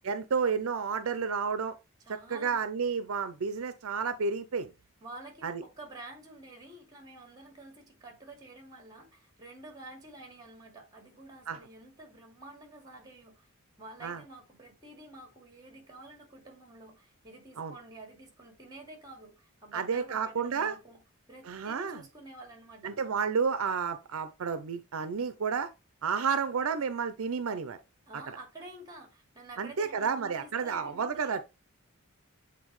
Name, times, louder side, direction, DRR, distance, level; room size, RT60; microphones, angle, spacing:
voice 1, 0.0-1.7 2.1-4.7 5.4-5.6 11.5-11.6 14.0-14.2 17.6-17.7 19.7-20.7 21.4-22.0 22.8-25.7 26.0-27.8 29.6-31.4, right 5 dB, 65° right, 0.5 m, -31 dB
voice 2, 2.0-2.6 5.0-13.5 13.8-21.0 21.3-23.0 28.1-31.4, right 2 dB, 20° right, 2.3 m, -49 dB
8.4 x 3.9 x 3.1 m
head